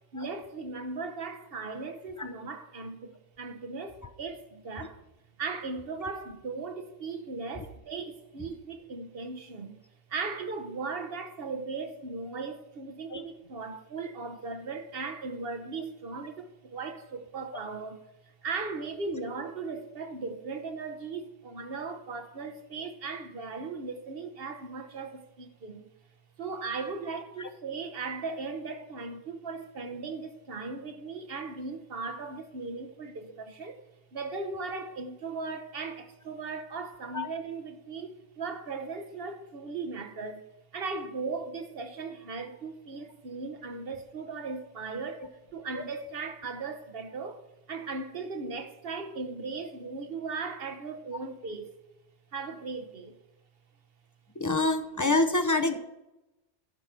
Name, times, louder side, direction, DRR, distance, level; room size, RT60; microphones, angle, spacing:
voice 1, 0.1-5.0 5.4-9.8 10.1-25.9 26.4-33.8 34.1-40.4 40.7-47.4 47.7-51.8 52.3-53.2, right 4 dB, 60° right, 1.1 m, -37 dB
voice 2, 54.4-55.8, left 2 dB, 25° left, 0.5 m, -26 dB
11.0 x 4.7 x 5.8 m
omnidirectional pair, 1.1 m